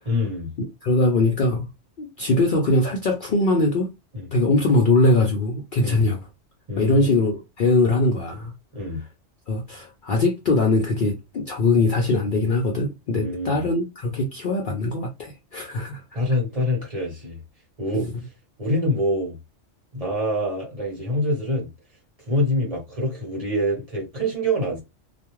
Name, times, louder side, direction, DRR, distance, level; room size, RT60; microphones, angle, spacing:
voice 1, 0.1-0.5 4.1-4.3 5.8-6.0 6.7-7.3 8.7-9.0 13.2-13.7 16.1-17.4 17.8-18.1 18.6-19.4 19.9-21.7 22.3-24.8, left 1 dB, 30° right, 1.1 m, -25 dB
voice 2, 0.6-1.7 2.0-3.9 4.3-6.2 6.8-8.5 9.5-16.2 17.9-18.1, left 2 dB, 55° left, 0.6 m, -21 dB
2.3 x 2.3 x 3.0 m
omnidirectional pair, 1.3 m